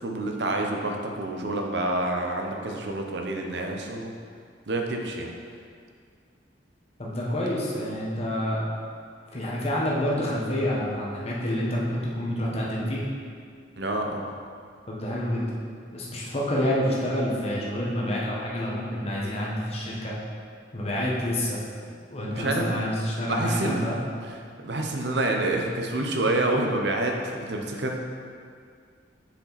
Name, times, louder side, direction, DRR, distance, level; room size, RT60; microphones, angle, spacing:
voice 1, 0.0-4.1 4.7-5.3 13.8-14.3 22.3-22.9 23.3-24.0 24.2-24.3 24.6-28.0, right 2 dB, 65° right, 2 dB, 0.8 m, -28 dB
voice 2, 7.0-8.6 9.3-13.0 14.9-15.4 15.9-20.1 20.7-21.6 22.1-24.0, equal, 35° left, -5 dB, 1.2 m, -28 dB
6.9 x 5.0 x 4.1 m, 2.1 s
head